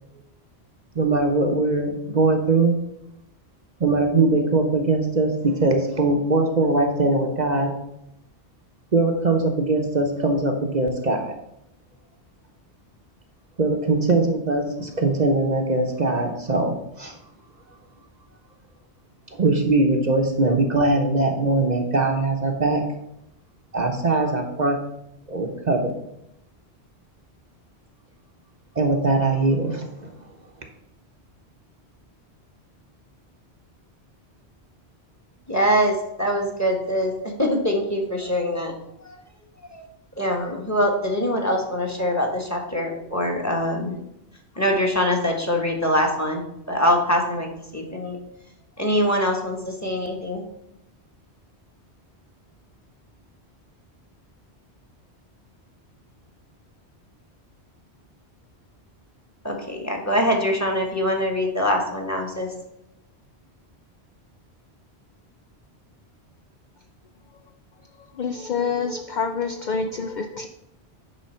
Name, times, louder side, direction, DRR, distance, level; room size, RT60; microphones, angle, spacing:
voice 1, 0.9-2.7 3.8-7.7 8.9-11.3 13.6-17.2 19.4-22.8 23.7-24.8 25.3-25.9 28.8-30.1, right 2 dB, 45° right, 3 dB, 0.9 m, -21 dB
voice 2, 35.5-38.7 39.0-39.2 39.8-39.9 40.2-44.0 44.6-46.4 46.7-48.2 48.8-50.4 59.4-62.5, equal, 15° left, 1 dB, 1.4 m, -23 dB
voice 3, 68.1-70.5, left 5 dB, 55° left, 6 dB, 0.6 m, -27 dB
9.7 x 3.7 x 5.6 m, 0.82 s
omnidirectional pair, 1.1 m